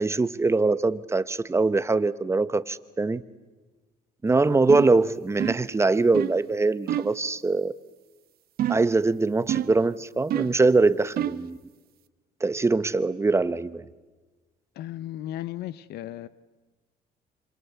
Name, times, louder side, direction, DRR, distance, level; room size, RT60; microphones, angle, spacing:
voice 1, 0.0-3.2 4.2-7.7 8.7-11.6 12.4-13.8, right 3 dB, 15° right, 15 dB, 0.9 m, -23 dB
sound 1, 4.7-5.0 5.4-5.7 6.1-6.4 6.9-7.2 8.6-9.0 9.5-9.8 10.3-10.6 11.2-11.5, right 11 dB, 65° right, 0.9 m, -28 dB
voice 2, 14.8-16.3, left 13 dB, 75° left, 16 dB, 0.8 m, -35 dB
26.5 x 26.0 x 8.3 m, 1.3 s
cardioid pair, 110°, 17 cm